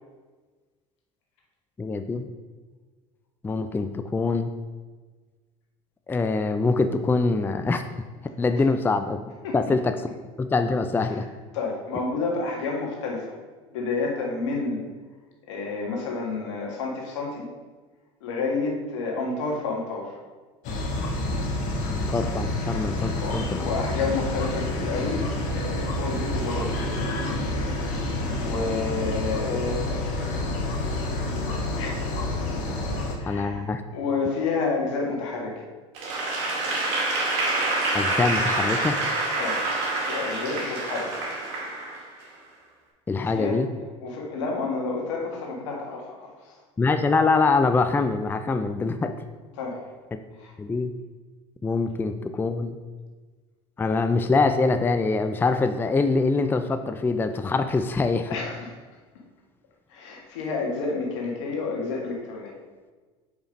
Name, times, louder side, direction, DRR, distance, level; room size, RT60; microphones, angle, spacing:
voice 1, 1.8-2.3 3.4-4.5 6.1-7.8 8.4-9.2 9.5-9.9 10.4-11.3 21.9-23.7 33.3-33.8 37.9-39.0 43.1-43.7 46.8-49.1 50.6-51.0 51.6-52.8 53.8-58.3, left 3 dB, 15° left, 8 dB, 0.4 m, -24 dB
voice 2, 11.5-13.4 13.7-14.8 15.5-17.4 18.2-20.2 23.2-25.2 25.5-26.8 28.4-30.1 31.7-32.1 33.2-33.6 33.9-35.6 39.3-39.6 40.1-41.1 43.2-43.6 44.0-46.6 49.6-49.8 50.4-50.5 58.3-58.7 59.9-62.5, left 4 dB, 85° left, 0 dB, 1.6 m, -30 dB
sound 1, 20.6-33.2, left 1 dB, 60° left, 1.4 m, -28 dB
Applause / Crowd, 36.0-42.3, right 2 dB, 75° right, 2.1 m, -27 dB
5.1 x 5.0 x 5.2 m, 1.4 s
supercardioid pair, 95°, 15 cm